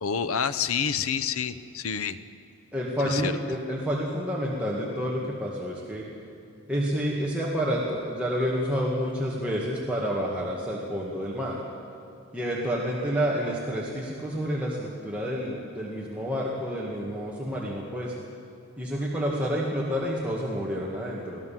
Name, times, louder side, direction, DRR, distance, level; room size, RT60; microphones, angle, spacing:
voice 1, 0.0-2.2 3.1-3.3, left 7 dB, 80° left, 14 dB, 0.8 m, -28 dB
voice 2, 2.7-6.0 6.7-11.6 12.3-18.1 18.8-21.4, equal, 5° right, -5 dB, 2.2 m, -29 dB
23.5 x 16.5 x 7.5 m, 2.7 s
head